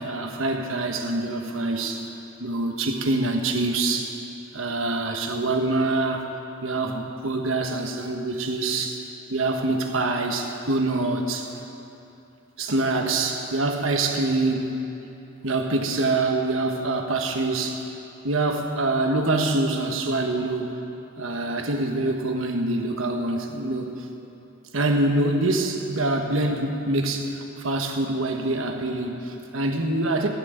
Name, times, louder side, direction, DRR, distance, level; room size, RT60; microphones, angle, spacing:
voice 1, 0.0-2.0 2.4-4.1 4.5-6.3 6.6-9.0 9.3-11.5 12.6-14.7 15.4-17.8 18.2-20.7 21.2-24.1 24.7-30.3, right 2 dB, 80° right, 3 dB, 1.2 m, -25 dB
16.0 x 6.1 x 8.7 m, 2.9 s
head